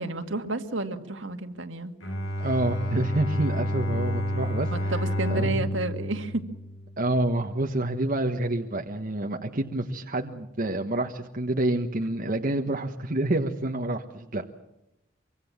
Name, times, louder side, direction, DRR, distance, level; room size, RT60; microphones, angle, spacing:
voice 1, 0.0-1.9 4.7-6.5, right 2 dB, 65° right, 6 dB, 2.1 m, -31 dB
Bowed string instrument, 2.0-7.3, equal, 70° left, 4.7 m, -30 dB
voice 2, 2.4-4.9 5.3-5.8 7.0-14.4, right 1 dB, 45° right, 3 dB, 1.4 m, -28 dB
25.0 x 24.5 x 7.4 m, 0.88 s
head